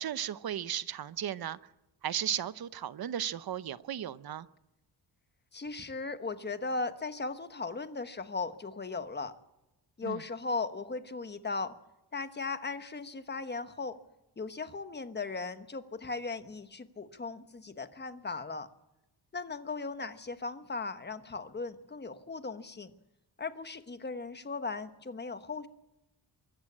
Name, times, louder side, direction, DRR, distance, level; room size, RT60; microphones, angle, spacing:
voice 1, 0.0-1.6 2.0-4.5 10.0-10.2, right 10 dB, 65° right, 0.8 m, -35 dB
voice 2, 5.5-9.3 10.0-11.8 12.1-14.0 14.4-18.7 19.3-22.9 23.4-25.7, left 3 dB, 25° left, 1.2 m, -37 dB
24.5 x 14.0 x 8.6 m
wide cardioid pair, 160°, 40 cm